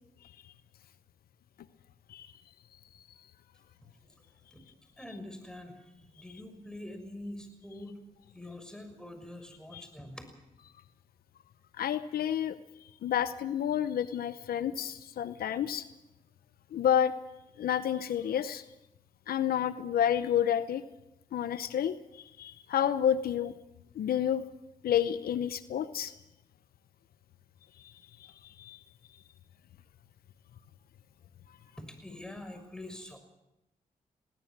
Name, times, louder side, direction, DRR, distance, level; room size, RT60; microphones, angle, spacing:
voice 1, 5.0-5.8 6.2-8.0 8.3-10.2 31.8-33.2, left 1 dB, 5° left, 7 dB, 6.1 m, -44 dB
voice 2, 11.8-12.6 13.0-15.9 16.7-17.1 17.6-18.6 19.3-20.8 21.3-23.5 24.0-24.4 24.8-26.1 28.4-28.8, left 9 dB, 85° left, 14 dB, 0.7 m, -29 dB
21.0 x 17.5 x 7.3 m, 0.92 s
cardioid pair, 50°, 15 cm